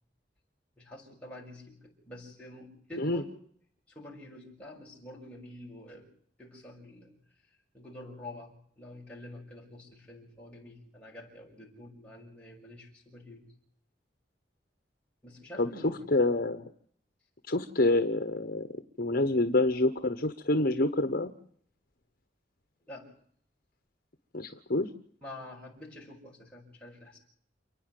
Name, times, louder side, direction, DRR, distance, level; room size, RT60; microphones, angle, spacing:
voice 1, 0.8-3.4 3.9-6.1 6.4-7.1 7.7-13.5 15.2-16.1 22.9-23.1 25.2-27.2, left 1 dB, 5° left, -3 dB, 6.5 m, -47 dB
voice 2, 15.6-16.6 17.5-21.3 24.3-24.9, left 2 dB, 55° left, 8 dB, 1.2 m, -27 dB
29.0 x 9.8 x 9.2 m, 0.62 s
head